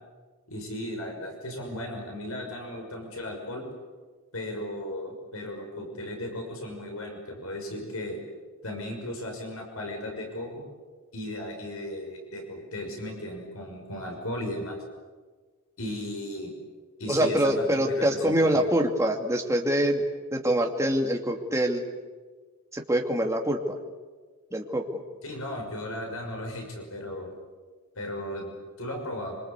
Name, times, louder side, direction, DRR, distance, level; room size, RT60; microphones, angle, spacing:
voice 1, 0.5-3.6 4.3-8.2 8.6-10.6 11.1-14.8 15.8-16.5 17.0-18.7 25.2-27.3 28.0-29.4, left 1 dB, 70° left, 2 dB, 6.1 m, -36 dB
voice 2, 17.1-20.0 20.3-21.8 22.7-23.8 24.5-25.0, right 1 dB, 15° right, 2 dB, 2.5 m, -25 dB
26.0 x 25.5 x 8.3 m, 1.4 s
head